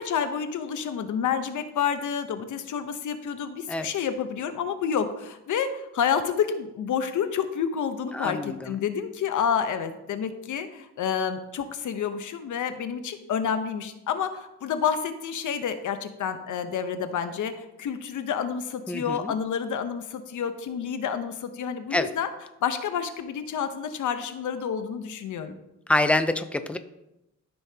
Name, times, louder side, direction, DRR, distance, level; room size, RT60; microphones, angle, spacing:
voice 1, 0.0-22.3 22.6-25.5, left 7 dB, 70° left, 9 dB, 0.9 m, -29 dB
voice 2, 8.1-8.7 18.9-19.3 21.9-22.1 25.9-26.8, left 2 dB, 5° left, 10 dB, 0.5 m, -26 dB
13.0 x 5.6 x 2.8 m, 0.91 s
cardioid pair, 110°, 31 cm